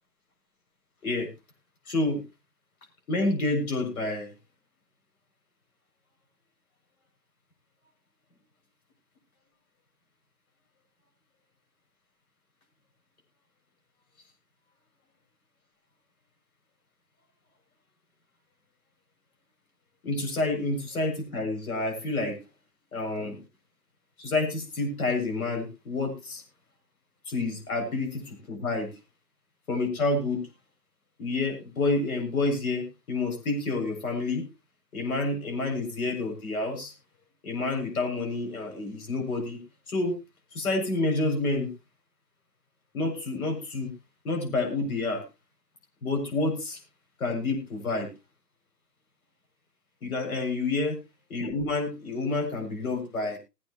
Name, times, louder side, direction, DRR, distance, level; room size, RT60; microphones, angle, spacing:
voice 1, 1.9-2.2 3.1-4.3 20.0-22.4 22.9-23.4 24.2-26.4 27.3-28.9 29.7-30.4 31.2-34.4 34.9-36.9 37.4-39.6 39.9-40.2 40.5-41.7 42.9-43.9 44.2-45.2 46.0-46.8 47.2-48.1 50.0-51.0 51.3-53.4, left 2 dB, 60° left, 4 dB, 7.4 m, -28 dB
20.5 x 9.1 x 3.0 m, 0.25 s
hypercardioid pair, 155°, 49 cm